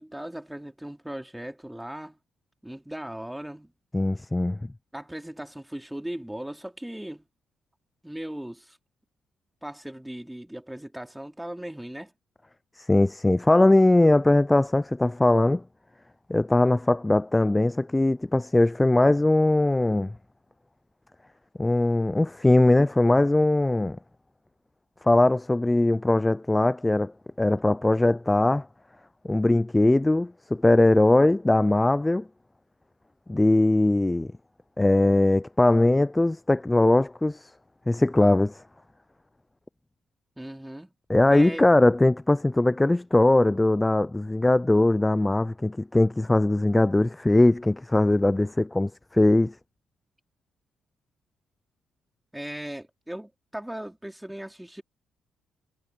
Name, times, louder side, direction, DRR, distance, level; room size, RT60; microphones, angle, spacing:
voice 1, 0.0-2.2 2.6-3.7 4.9-7.3 8.0-8.8 9.6-12.1 40.4-40.9 41.3-41.6 52.3-54.8, right 1 dB, 5° right, 4.1 m, -38 dB
voice 2, 3.9-4.6 12.8-15.6 16.3-20.1 21.6-24.0 25.0-28.7 29.2-32.3 33.3-34.3 34.8-37.5 37.9-38.6 41.1-49.5, left 2 dB, 15° left, 0.3 m, -21 dB
cardioid pair, 90°, 0 cm